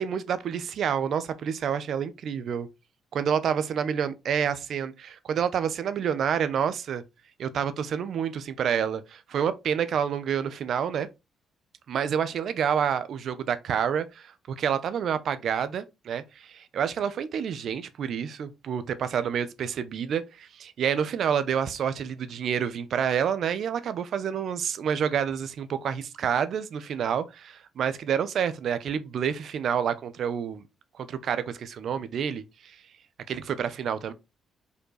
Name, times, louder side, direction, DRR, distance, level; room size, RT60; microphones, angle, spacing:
voice 1, 0.0-2.7 3.1-7.0 7.4-11.1 11.9-30.6 31.0-32.7 33.3-34.1, right 8 dB, 65° right, 0.9 m, -28 dB
5.3 x 4.5 x 4.9 m
cardioid pair, 90°, 0 cm